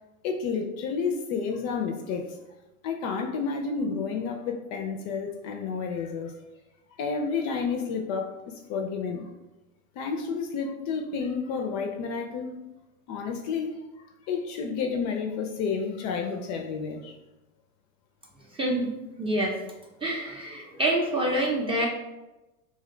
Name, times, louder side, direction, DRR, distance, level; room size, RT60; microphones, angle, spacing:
voice 1, 0.2-2.4 2.8-6.3 7.0-9.3 10.0-12.6 13.1-13.8 14.3-17.2, left 5 dB, 40° left, 3 dB, 0.4 m, -30 dB
voice 2, 18.5-18.9 19.2-19.6 20.0-21.9, right 1 dB, 15° right, -2 dB, 0.5 m, -26 dB
2.7 x 2.1 x 3.7 m, 1.0 s
hypercardioid pair, 95°, 43 cm